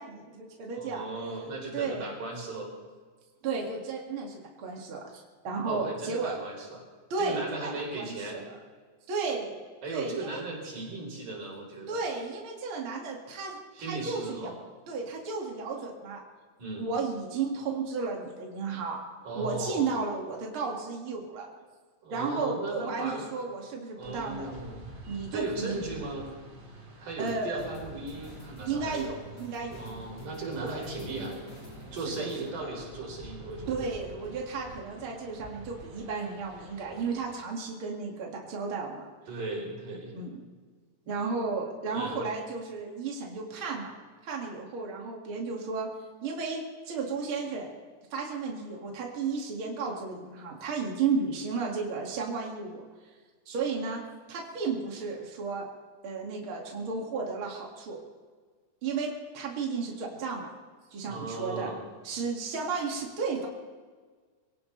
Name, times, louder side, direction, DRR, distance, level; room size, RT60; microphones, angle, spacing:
voice 1, 0.0-1.0 1.7-2.1 3.4-6.4 7.1-8.6 9.1-9.6 9.9-10.4 11.9-14.5 14.9-16.2 16.8-19.0 19.4-21.5 22.1-24.5 25.1-25.8 27.2-27.7 28.7-29.8 30.6-30.9 32.1-32.7 33.7-39.1 40.1-40.4 41.1-44.0 44.2-45.9 46.2-47.7 48.1-52.8 53.5-55.6 56.0-58.0 58.8-60.5 60.9-61.7 62.0-63.5, right 4 dB, 45° right, -1 dB, 2.9 m, -33 dB
voice 2, 0.8-2.7 5.7-6.8 7.2-8.4 9.8-12.0 13.7-14.6 16.6-16.9 19.2-20.0 22.0-23.3 24.0-24.9 25.3-26.3 27.0-29.1 29.7-31.4 31.9-33.8 39.3-40.1 41.9-42.2 61.0-61.8, right 2 dB, 85° right, -1 dB, 5.6 m, -37 dB
sound 1, 24.0-37.4, right 1 dB, 60° right, 5.0 m, -48 dB
sound 2, 27.3-32.5, right 1 dB, 45° left, 3.9 m, -50 dB
24.0 x 17.5 x 3.3 m, 1.5 s
omnidirectional pair, 3.5 m